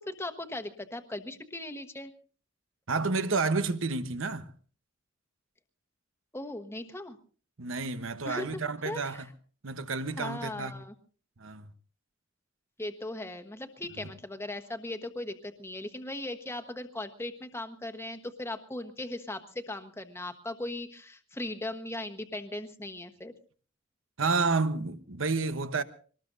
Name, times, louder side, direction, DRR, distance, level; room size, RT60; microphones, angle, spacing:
voice 1, 0.1-2.1 6.3-7.2 8.2-8.5 8.8-9.2 10.2-10.9 12.8-23.3, left 1 dB, 10° left, 1.2 m, -38 dB
voice 2, 2.9-4.5 7.6-9.3 9.6-10.8 11.4-11.7 14.0-14.1 24.2-25.8, right 4 dB, 75° right, 1.1 m, -30 dB
24.0 x 19.5 x 2.7 m
head